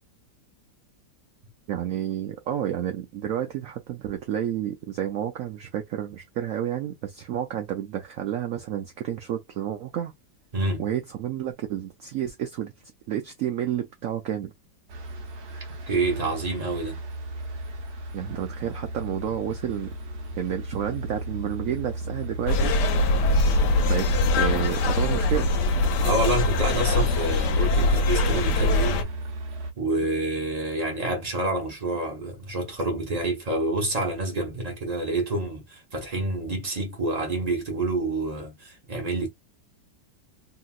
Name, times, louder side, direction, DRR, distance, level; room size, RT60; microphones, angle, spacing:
voice 1, 1.7-10.1 10.8-12.7 13.1-14.5 18.1-19.9 20.4-22.7 23.8-24.1 24.4-25.5, right 10 dB, 90° right, 0.7 m, -30 dB
voice 2, 10.5-10.8 15.9-17.0 26.0-29.1 29.8-39.3, right 2 dB, 30° right, 0.8 m, -28 dB
sound 1, 14.9-29.7, right 1 dB, 65° right, 1.1 m, -35 dB
sound 2, 22.5-29.0, left 2 dB, 70° left, 1.1 m, -22 dB
2.8 x 2.8 x 2.3 m
omnidirectional pair, 2.0 m